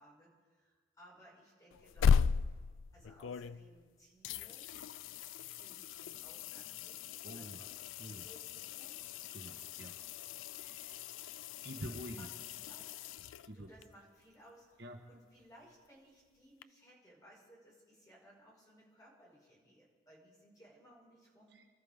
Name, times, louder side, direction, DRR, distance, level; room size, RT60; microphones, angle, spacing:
voice 1, 0.0-2.2 2.9-4.7 5.6-9.0 12.2-12.3 12.5-13.0 13.5-21.7, equal, 20° left, -5 dB, 5.6 m, -61 dB
sound 1, 1.7-3.9 4.2-13.8 16.6-16.7, left 6 dB, 85° left, 0.3 m, -37 dB
voice 2, 7.2-7.7 8.0-8.2 9.3-9.9 10.6-11.0 11.6-12.3 13.4-13.7 14.8-15.0 21.5-21.6, equal, 65° right, 2 dB, 1.4 m, -47 dB
27.5 x 14.0 x 3.7 m, 1.5 s
head